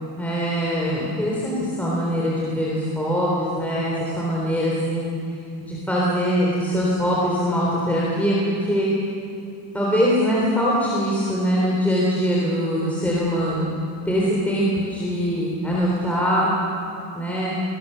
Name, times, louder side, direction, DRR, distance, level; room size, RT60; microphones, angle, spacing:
voice 1, 0.2-5.1 5.6-8.3 8.7-8.9 9.7-13.7 14.1-16.5 17.1-17.5, equal, 5° left, -5 dB, 3.4 m, -22 dB
23.0 x 20.0 x 6.8 m, 2.7 s
cardioid pair, 170°, 45 cm